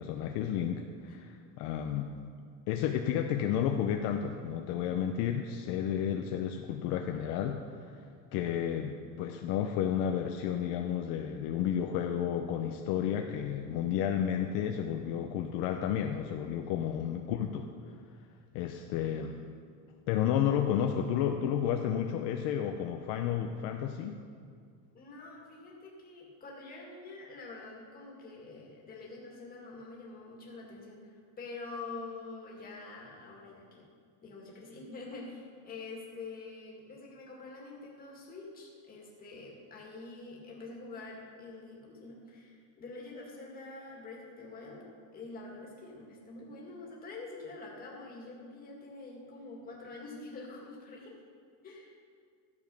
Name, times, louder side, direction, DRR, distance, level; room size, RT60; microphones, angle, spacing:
voice 1, 0.0-2.1 2.7-8.0 8.3-17.7 18.5-19.4 20.1-24.2, left 9 dB, 60° left, 4 dB, 0.7 m, -32 dB
voice 2, 24.9-33.9 34.2-51.2 51.6-51.9, left 3 dB, 20° left, -3 dB, 2.0 m, -46 dB
13.5 x 7.2 x 5.3 m, 2.2 s
cardioid pair, 175°, 42 cm